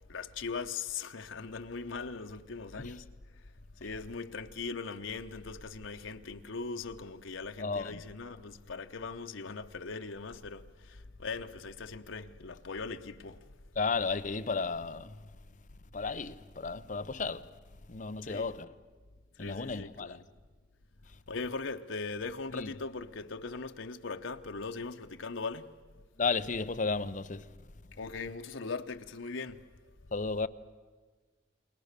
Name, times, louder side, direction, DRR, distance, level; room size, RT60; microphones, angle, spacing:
voice 1, 0.1-3.1 3.8-13.4 18.2-18.5 19.4-20.2 21.3-25.7 28.0-29.7, left 4 dB, 90° left, 0.9 m, -40 dB
voice 2, 7.6-8.0 13.8-15.3 15.9-17.5 17.9-18.7 19.4-20.2 21.1-21.2 22.5-22.7 26.2-27.6 30.1-30.5, left 4 dB, 40° left, 0.7 m, -34 dB
30.0 x 21.5 x 6.7 m
head